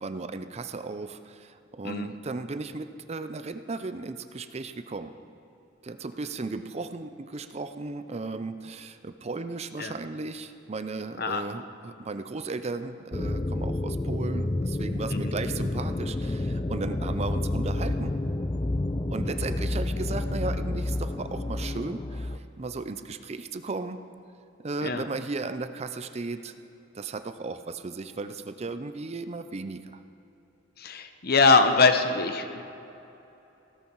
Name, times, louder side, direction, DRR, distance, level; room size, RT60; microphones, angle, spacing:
voice 1, 0.0-5.1 5.8-18.1 19.1-24.1 24.6-26.5 26.9-30.0, right 3 dB, 35° right, 10 dB, 0.5 m, -35 dB
sound 1, 13.1-22.4, left 2 dB, 25° left, 0.4 m, -29 dB
voice 2, 30.8-32.6, left 4 dB, 55° left, 8 dB, 0.9 m, -23 dB
17.0 x 14.0 x 4.6 m, 2.9 s
head